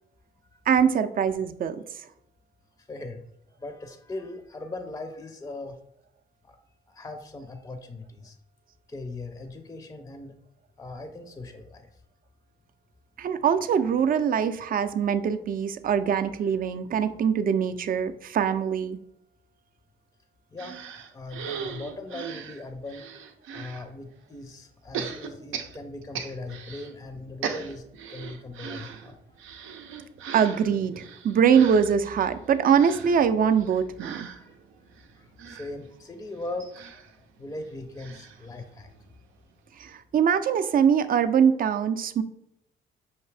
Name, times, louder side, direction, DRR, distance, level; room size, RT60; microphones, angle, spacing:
voice 1, 0.7-1.8 13.2-19.0 30.3-34.3 39.8-42.2, right 7 dB, 45° right, 9 dB, 0.4 m, -23 dB
voice 2, 2.8-3.2 3.6-5.8 6.4-6.6 6.9-8.4 8.9-10.3 10.8-11.9 20.5-20.8 21.1-23.0 23.5-27.8 28.1-29.4 34.3-34.6 35.1-38.9, left 2 dB, 15° left, 7 dB, 0.5 m, -39 dB
sound 1, 20.6-23.8 24.9-26.9 27.2-39.1 39.5-39.6 39.8-39.9, right 7 dB, 90° right, 0.6 m, -39 dB
5.7 x 2.6 x 3.3 m, 0.78 s
cardioid pair, 90°, 20 cm